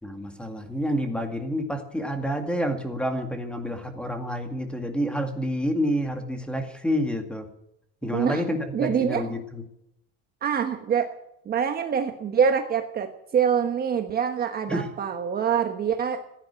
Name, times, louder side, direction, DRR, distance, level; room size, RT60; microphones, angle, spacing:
voice 1, 0.0-7.5 8.0-9.6 14.7-14.9, equal, 5° left, 5 dB, 2.1 m, -28 dB
voice 2, 8.1-8.4 8.7-9.2 10.4-11.1 11.4-16.2, right 7 dB, 30° right, 6 dB, 1.2 m, -25 dB
15.5 x 10.5 x 8.9 m, 0.79 s
cardioid pair, 150°, 29 cm